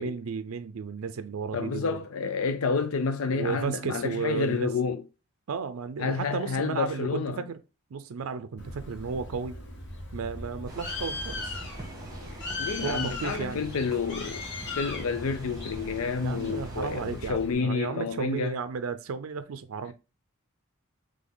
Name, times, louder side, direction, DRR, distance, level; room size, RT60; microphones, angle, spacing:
voice 1, 0.0-2.0 3.3-4.7 5.5-7.6 7.9-9.6 10.1-11.6 12.8-13.7 16.2-19.9, right 5 dB, 80° right, 0.4 m, -33 dB
voice 2, 1.5-5.0 6.0-7.4 12.6-14.4 14.8-18.5, left 5 dB, 80° left, 0.5 m, -29 dB
Bird, 8.6-17.5, left 2 dB, 55° left, 1.2 m, -38 dB
sound 1, 10.7-17.3, right 1 dB, 20° right, 1.2 m, -46 dB
3.9 x 3.3 x 3.6 m
head